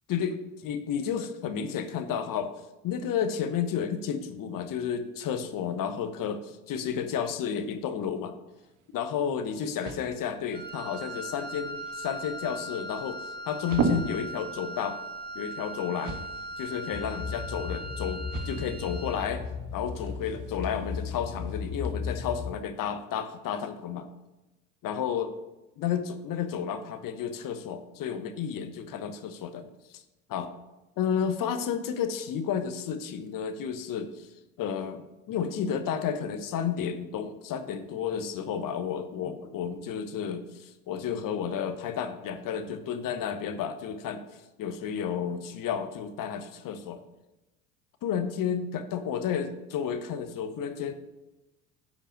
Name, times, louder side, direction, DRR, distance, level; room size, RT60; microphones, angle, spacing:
voice 1, 0.1-2.5 2.8-8.4 8.9-15.0 15.3-16.2 16.6-19.4 19.7-24.1 24.8-25.3 25.8-30.0 30.3-30.5 31.0-34.3 34.6-35.0 35.3-47.0 48.0-50.9, left 8 dB, 50° left, 9 dB, 1.1 m, -32 dB
sound 1, 8.5-21.9, right 4 dB, 50° right, 1.5 m, -39 dB
Wind instrument woodwind instrument, 10.5-19.4, right 1 dB, 25° right, 1.8 m, -39 dB
sound 2, 16.9-22.6, left 5 dB, 30° left, 1.1 m, -36 dB
10.0 x 5.4 x 7.4 m, 1.0 s
hypercardioid pair, 60°, 40 cm